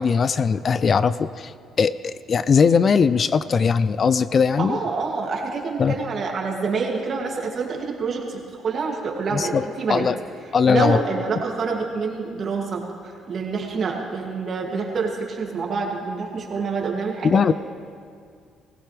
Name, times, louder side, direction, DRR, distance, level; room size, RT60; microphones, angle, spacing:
voice 1, 0.0-1.5 1.8-4.8 5.8-6.0 9.3-10.1 10.5-11.0 17.2-17.5, left 6 dB, 45° left, 15 dB, 0.4 m, -19 dB
voice 2, 4.6-10.0 10.7-17.4, right 4 dB, 50° right, 0 dB, 2.6 m, -27 dB
20.0 x 16.0 x 3.5 m, 2.2 s
cardioid pair, 85°, 0 cm